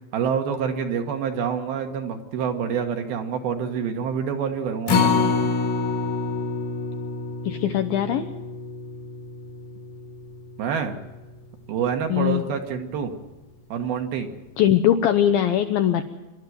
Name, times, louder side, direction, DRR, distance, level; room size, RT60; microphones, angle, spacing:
voice 1, 0.0-5.5 10.6-11.0 11.7-13.1 13.7-14.3, right 7 dB, 65° right, 5 dB, 3.1 m, -27 dB
Acoustic guitar, 4.9-11.2 11.6-11.7 12.1-12.2, left 4 dB, 60° left, 2.5 m, -27 dB
voice 2, 7.4-8.3 12.1-12.4 14.6-16.0, left 10 dB, 80° left, 8 dB, 2.1 m, -21 dB
27.0 x 12.5 x 9.5 m, 1.1 s
omnidirectional pair, 5.2 m